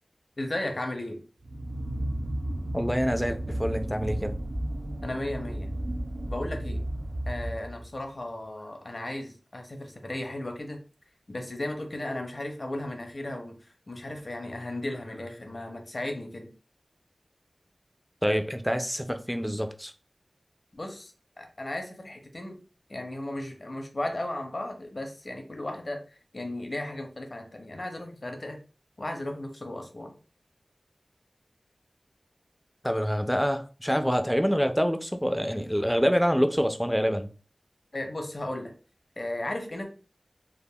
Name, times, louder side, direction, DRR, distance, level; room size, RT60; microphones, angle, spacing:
voice 1, 0.4-1.2 5.0-5.7 6.3-6.9 7.3-10.8 11.3-16.5 20.7-22.6 22.9-26.0 26.3-28.6 29.0-30.1 37.9-38.7 39.2-39.8, left 1 dB, 50° left, 0.6 m, -35 dB
sound 1, 1.4-8.0, right 1 dB, 75° right, 0.5 m, -33 dB
voice 2, 2.7-4.3 18.2-19.9 32.8-37.3, equal, ahead, 0.3 m, -26 dB
3.5 x 2.0 x 2.2 m
wide cardioid pair, 55°, 0 cm